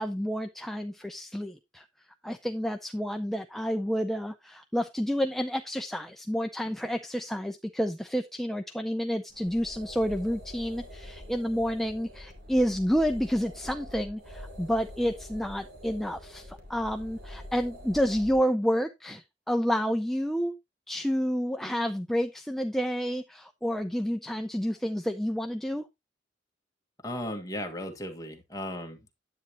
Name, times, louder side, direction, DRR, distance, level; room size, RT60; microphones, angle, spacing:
voice 1, 0.0-1.8 2.2-20.5 20.9-25.8, equal, ahead, 0.5 m, -29 dB
sound 1, 9.3-18.4, equal, 60° right, 2.4 m, -45 dB
voice 2, 27.0-29.1, left 1 dB, 20° left, 1.7 m, -36 dB
9.9 x 8.4 x 2.9 m
head